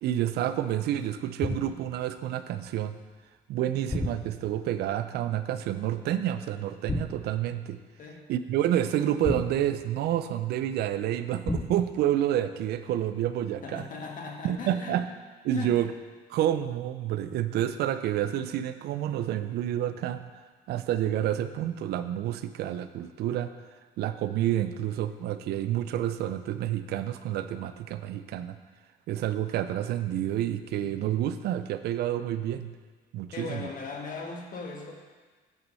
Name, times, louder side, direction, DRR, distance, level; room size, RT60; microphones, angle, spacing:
voice 1, 0.0-3.0 3.5-7.8 8.3-13.8 14.4-15.1 15.4-15.9 16.3-20.3 20.7-23.5 24.0-28.6 29.1-32.7 33.1-33.7, right 11 dB, 70° right, 11 dB, 0.5 m, -29 dB
sound 1, 1.4-1.9 3.9-4.7 6.9-7.4 9.2-10.1 11.5-12.0, left 2 dB, 15° left, 0.5 m, -33 dB
voice 2, 13.6-15.0 15.5-15.8 33.3-34.9, left 4 dB, 50° left, 1 dB, 1.6 m, -38 dB
9.2 x 6.0 x 5.5 m, 1.4 s
cardioid pair, 110°, 17 cm